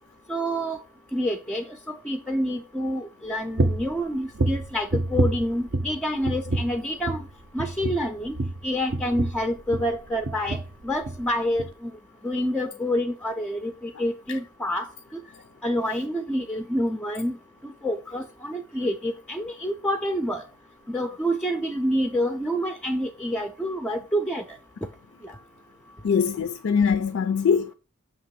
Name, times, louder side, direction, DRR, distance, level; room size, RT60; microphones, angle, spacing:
voice 1, 0.3-0.8 1.1-7.3 7.5-8.4 8.6-11.9 12.2-15.2 15.6-17.4 17.6-20.4 20.9-24.6 25.2-25.4, equal, 5° left, 0.4 m, -28 dB
sound 1, 3.6-3.9 4.4-6.0 6.2-6.8 7.0-7.3 7.6-10.0 10.2-10.7 11.0-11.2 11.6-11.7, right 2 dB, 50° right, 0.6 m, -27 dB
voice 2, 26.0-27.7, left 6 dB, 75° left, 0.4 m, -22 dB
6.7 x 2.9 x 5.7 m
head